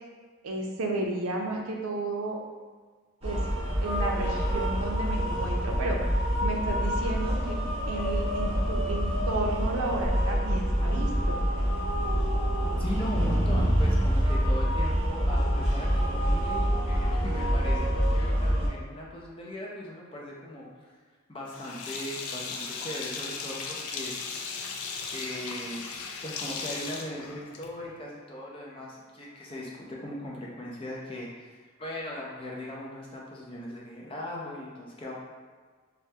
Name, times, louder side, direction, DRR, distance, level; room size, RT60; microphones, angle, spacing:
voice 1, 0.4-2.4 3.2-3.4 3.8-6.0 6.4-7.6 7.9-11.4, right 2 dB, 85° right, 1 dB, 0.5 m, -32 dB
sound 1, 3.2-18.7, equal, 30° right, 0.8 m, -26 dB
voice 2, 12.8-20.7 21.3-24.1 25.1-25.9 26.2-31.5 31.8-35.1, left 1 dB, 25° left, -4 dB, 0.5 m, -38 dB
Sink (filling or washing), 21.5-27.9, left 5 dB, 90° left, 0.4 m, -37 dB
3.3 x 2.2 x 2.7 m, 1.5 s
head